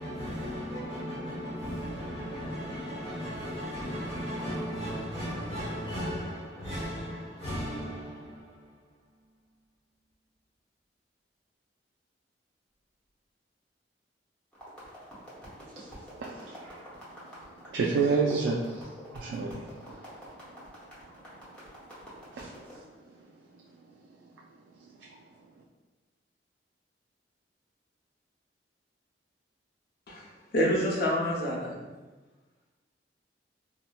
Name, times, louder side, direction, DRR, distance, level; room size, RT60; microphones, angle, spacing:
voice 1, 0.0-9.0, equal, 35° left, 1.0 m, -36 dB
sound 1, 14.5-22.8, equal, 5° left, 0.9 m, -48 dB
voice 2, 15.7-17.0 17.4-20.1 21.5-21.6 22.3-22.5 23.1-23.2 23.5-23.6 25.0-25.1, right 4 dB, 75° right, 0.3 m, -31 dB
voice 3, 30.5-31.7, equal, 60° left, 0.7 m, -27 dB
4.0 x 2.0 x 2.2 m
head